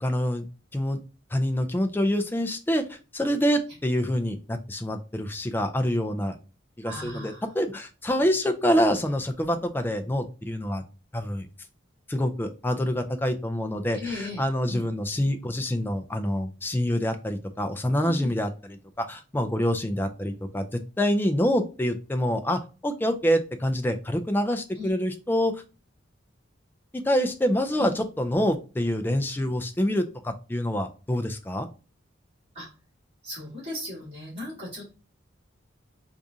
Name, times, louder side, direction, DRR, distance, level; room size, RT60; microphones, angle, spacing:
voice 1, 0.0-0.4 0.7-1.0 1.3-6.4 6.8-10.8 11.1-11.5 12.1-18.5 19.0-25.6 26.9-31.7, equal, 10° left, 6 dB, 0.3 m, -26 dB
voice 2, 6.8-7.5 13.9-14.9 18.0-18.3 24.7-24.9 27.8-28.0 32.5-32.7 33.2-34.9, left 2 dB, 30° right, -7 dB, 1.9 m, -37 dB
4.8 x 2.4 x 2.7 m, 0.33 s
head